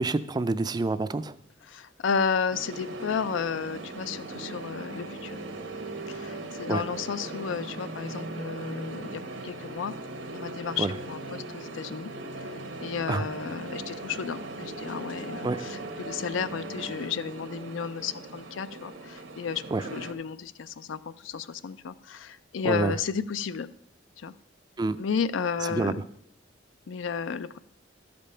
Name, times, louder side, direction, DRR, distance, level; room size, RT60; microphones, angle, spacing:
voice 1, 0.0-1.3 6.7-6.8 10.8-10.9 13.1-13.2 15.4-15.6 19.7-19.8 22.6-23.0 24.8-25.0 25.7-26.0, right 3 dB, 20° right, 13 dB, 0.3 m, -27 dB
voice 2, 1.6-5.4 6.1-9.9 10.3-12.1 12.4-12.5 12.8-23.7 24.2-24.3 25.0-26.0 26.9-27.6, left 6 dB, 80° left, 14 dB, 0.4 m, -33 dB
sound 1, 2.5-20.1, right 2 dB, 80° right, 1.1 m, -39 dB
12.5 x 5.2 x 5.5 m, 0.73 s
head